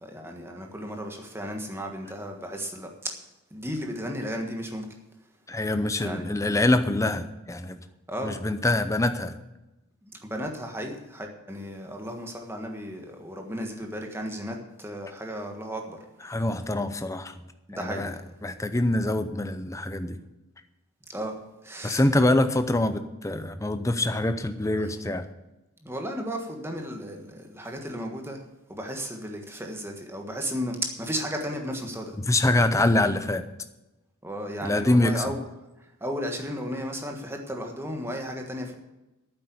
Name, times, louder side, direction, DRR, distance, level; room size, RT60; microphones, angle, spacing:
voice 1, 0.0-3.2 3.5-4.9 6.0-6.2 8.1-8.4 10.0-16.0 17.7-18.1 21.1-21.4 21.6-22.0 24.8-25.0 25.8-28.4 28.7-32.1 34.2-35.4 36.0-38.8, equal, 10° right, 2 dB, 1.4 m, -34 dB
voice 2, 5.5-7.8 8.2-9.3 16.2-17.3 17.7-18.1 18.4-20.2 21.8-25.3 32.2-33.4 34.6-35.3, left 1 dB, 15° left, 10 dB, 0.6 m, -25 dB
9.2 x 7.9 x 9.4 m, 1.0 s
head